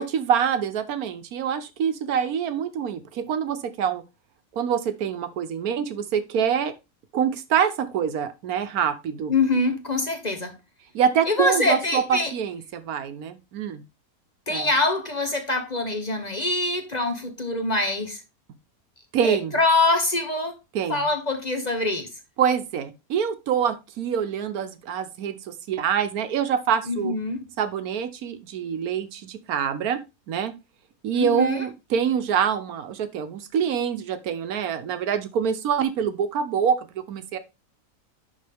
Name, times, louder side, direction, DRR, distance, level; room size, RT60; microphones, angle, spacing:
voice 1, 0.0-4.0 4.5-6.7 7.1-9.3 10.9-13.8 14.5-14.7 19.1-19.5 20.7-21.0 22.4-27.1 27.6-30.0 30.3-30.5 31.0-37.4, right 8 dB, 85° right, 1.3 m, -25 dB
voice 2, 9.3-10.5 11.3-12.3 14.5-18.2 19.2-20.6 20.9-22.1 26.9-27.5 31.1-31.6, left 2 dB, 35° left, 0.9 m, -24 dB
11.0 x 3.8 x 3.4 m
omnidirectional pair, 1.5 m